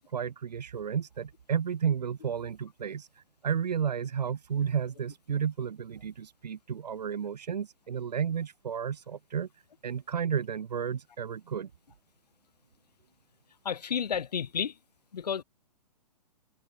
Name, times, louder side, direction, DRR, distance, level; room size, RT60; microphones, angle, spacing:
voice 1, 0.0-3.1 3.4-9.5 9.8-11.7, right 7 dB, 80° right, 0.6 m, -32 dB
voice 2, 13.6-14.8 15.1-15.4, left 7 dB, 75° left, 1.0 m, -31 dB
figure-of-eight pair, 120°, 21 cm